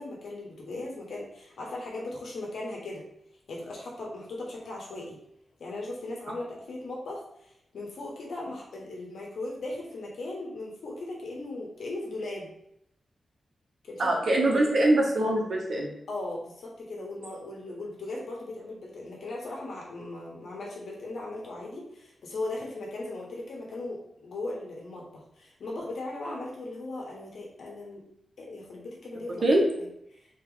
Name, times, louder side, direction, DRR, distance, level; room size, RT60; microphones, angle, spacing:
voice 1, 0.0-3.0 3.5-5.2 5.6-12.5 13.8-14.7 16.1-25.1 25.4-28.0 28.4-29.4 29.8-30.3, left 2 dB, 80° left, -2 dB, 1.4 m, -38 dB
voice 2, 14.0-15.9 29.4-29.7, right 1 dB, 60° right, -1 dB, 1.2 m, -23 dB
4.1 x 3.1 x 4.0 m, 0.76 s
wide cardioid pair, 110°, 0 cm